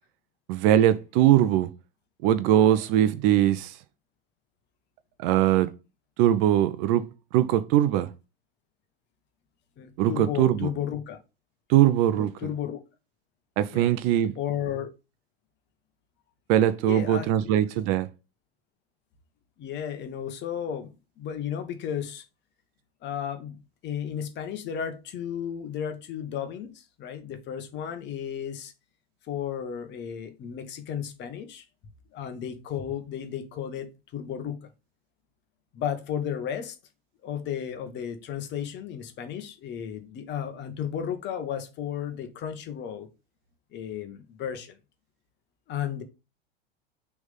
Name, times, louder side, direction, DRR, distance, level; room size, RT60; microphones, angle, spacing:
voice 1, 0.5-1.7 2.2-3.7 5.2-5.7 6.2-7.0 7.3-8.1 10.0-10.7 11.7-12.3 13.6-14.3 16.5-18.1, right 12 dB, 45° right, 0.7 m, -21 dB
voice 2, 9.8-11.2 12.2-12.8 13.7-13.9 14.3-14.9 16.9-17.6 19.6-22.2 23.0-28.7 29.3-31.7 32.1-34.7 35.7-36.8 37.2-43.1 43.7-44.8 45.7-46.0, left 9 dB, 35° left, 1.4 m, -34 dB
6.2 x 3.6 x 5.2 m
figure-of-eight pair, 90°, 30 cm